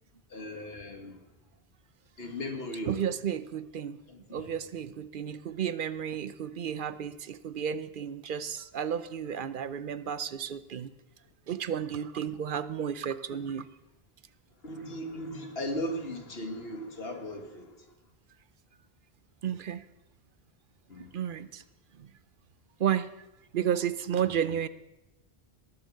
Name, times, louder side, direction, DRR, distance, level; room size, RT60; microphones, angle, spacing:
voice 1, 0.3-1.2 2.2-3.1 4.1-4.5 13.4-13.5 14.6-17.9 20.9-21.1, left 1 dB, 70° left, 4 dB, 2.1 m, -37 dB
voice 2, 2.9-4.0 4.3-10.9 11.5-13.7 19.4-19.8 21.1-21.6 21.9-22.1 22.8-23.1 23.5-24.7, right 9 dB, 60° right, 14 dB, 0.8 m, -32 dB
18.5 x 8.1 x 6.5 m, 0.96 s
omnidirectional pair, 1.1 m